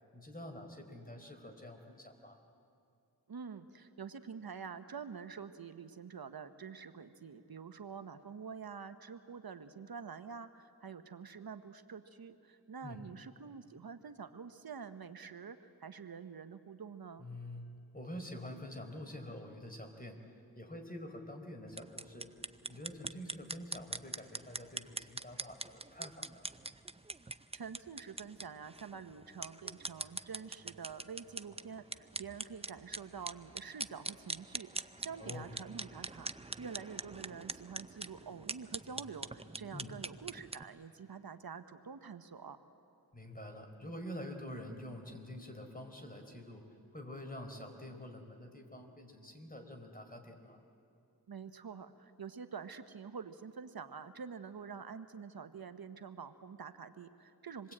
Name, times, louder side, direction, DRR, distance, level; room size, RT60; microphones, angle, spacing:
voice 1, 0.1-2.4 12.8-13.0 17.2-20.2 20.5-22.3 22.7-26.5 35.2-35.5 39.7-40.0 43.1-46.6 46.9-50.6, left 1 dB, 25° left, 5 dB, 4.2 m, -47 dB
voice 2, 3.3-17.3 27.5-42.6 51.3-57.7, right 6 dB, 70° right, 9 dB, 1.1 m, -47 dB
sound 1, 21.7-40.6, right 3 dB, 15° right, 0.6 m, -44 dB
27.0 x 22.0 x 8.7 m, 2.5 s
cardioid pair, 45°, 38 cm